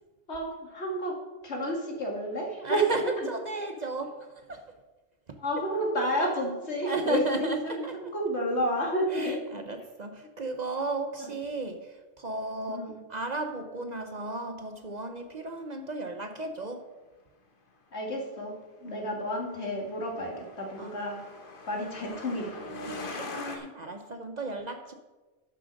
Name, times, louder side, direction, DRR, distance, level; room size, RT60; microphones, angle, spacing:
voice 1, 0.3-1.1 1.4-2.8 3.2-3.3 5.4-9.4 11.2-11.3 12.7-13.0 17.9-18.5 18.8-21.2 21.7-22.5, equal, 70° left, 0 dB, 2.2 m, -31 dB
voice 2, 2.6-4.6 5.3-5.4 6.8-8.1 9.1-16.9 18.8-19.2 20.8-21.0 22.9-24.9, right 2 dB, 45° right, 7 dB, 0.8 m, -35 dB
Truck, 19.4-23.6, left 2 dB, 50° left, 1.3 m, -41 dB
11.5 x 6.2 x 5.2 m, 1.2 s
omnidirectional pair, 1.2 m